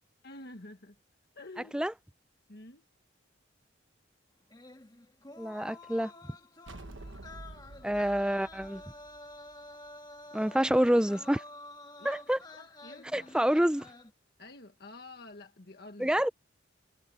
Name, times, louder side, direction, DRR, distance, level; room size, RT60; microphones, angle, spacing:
voice 1, 0.2-1.0 1.3-1.8 2.5-2.8 12.0-12.3 12.6-13.3 14.4-16.1, left 2 dB, 50° left, 1.4 m, -49 dB
sound 1, 4.5-14.1, left 2 dB, 20° left, 1.7 m, -50 dB
voice 2, 5.4-6.1 7.8-8.8 10.3-11.4 12.0-12.4 13.1-13.9 16.0-16.3, equal, 5° right, 0.5 m, -27 dB
sound 2, 6.7-10.1, right 2 dB, 70° right, 1.3 m, -49 dB
head